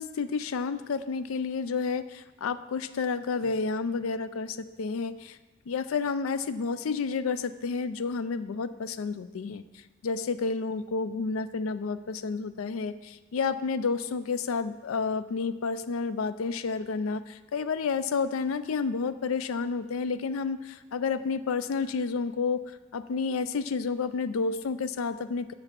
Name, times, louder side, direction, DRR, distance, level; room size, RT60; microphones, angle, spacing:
voice 1, 0.0-5.4 5.7-9.6 10.0-22.6 22.9-25.5, left 4 dB, 85° left, 13 dB, 0.4 m, -30 dB
6.8 x 5.8 x 6.7 m, 1.2 s
head